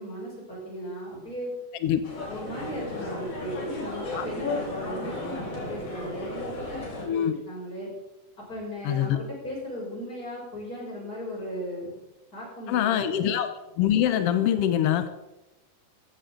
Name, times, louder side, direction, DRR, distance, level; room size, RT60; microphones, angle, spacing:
voice 1, 0.0-1.5 2.3-7.9 8.4-11.9 12.3-13.3, equal, 25° left, -4 dB, 7.1 m, -37 dB
sound 1, 2.0-7.1, left 2 dB, 65° left, 5.5 m, -34 dB
voice 2, 7.1-7.4 8.8-9.2 12.7-13.5 13.8-15.1, left 10 dB, 80° left, 10 dB, 1.3 m, -24 dB
16.5 x 15.0 x 3.8 m, 0.97 s
omnidirectional pair, 3.7 m